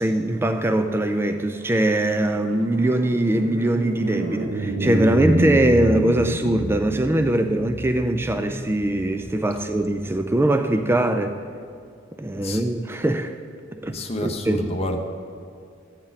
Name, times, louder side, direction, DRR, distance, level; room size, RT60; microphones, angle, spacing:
voice 1, 0.0-11.3 12.2-13.3 13.8-13.9 14.2-14.7, right 1 dB, 10° right, 7 dB, 0.3 m, -22 dB
sound 1, 1.4-11.0, right 1 dB, 45° right, 0.7 m, -29 dB
voice 2, 13.9-15.0, left 1 dB, 30° left, 4 dB, 0.7 m, -29 dB
13.0 x 8.8 x 4.0 m, 2.3 s
head